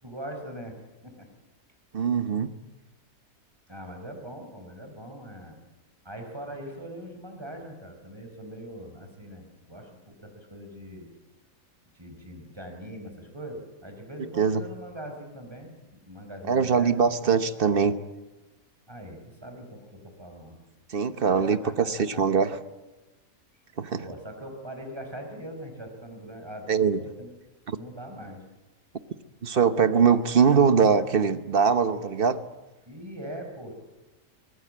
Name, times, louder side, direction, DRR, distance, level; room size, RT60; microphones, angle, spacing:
voice 1, 0.0-0.8 1.0-1.3 3.7-5.6 6.0-11.1 11.9-16.9 17.2-17.4 18.9-20.6 21.3-22.2 24.0-27.3 27.7-28.4 32.9-33.7, equal, 15° right, 4 dB, 4.6 m, -41 dB
voice 2, 1.9-2.5 14.4-14.6 16.5-18.0 20.9-22.6 23.8-24.0 26.7-27.0 27.7-27.8 29.4-32.4, right 6 dB, 45° right, 12 dB, 1.1 m, -22 dB
24.0 x 18.5 x 8.6 m, 1.1 s
omnidirectional pair, 1.5 m